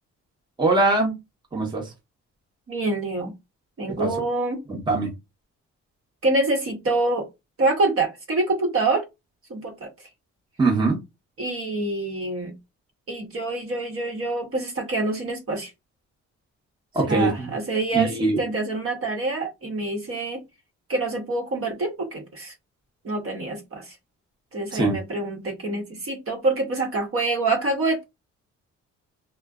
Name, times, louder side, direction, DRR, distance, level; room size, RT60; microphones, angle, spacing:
voice 1, 0.6-1.2 1.5-1.9 3.9-4.1 4.7-5.1 10.6-11.0 16.9-17.5 17.9-18.4 24.7-25.0, right 3 dB, 15° right, 0.9 m, -22 dB
voice 2, 2.7-3.3 3.8-4.6 6.2-7.3 7.6-9.0 9.5-9.9 11.4-12.5 13.1-15.7 17.0-20.4 20.9-22.5 23.0-23.9 24.5-28.0, right 2 dB, 45° right, 1.0 m, -26 dB
2.5 x 2.1 x 2.4 m
cardioid pair, 90°, 30 cm